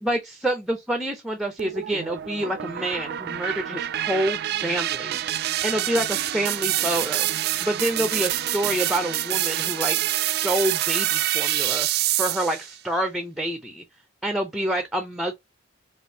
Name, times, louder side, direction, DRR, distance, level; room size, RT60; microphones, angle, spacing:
voice 1, 0.0-5.2 5.6-7.3 7.6-11.9 12.2-13.8 14.2-15.3, right 1 dB, ahead, 0.5 m, -27 dB
sound 1, 1.6-12.7, right 13 dB, 55° right, 0.3 m, -26 dB
5.0 x 2.5 x 2.7 m
head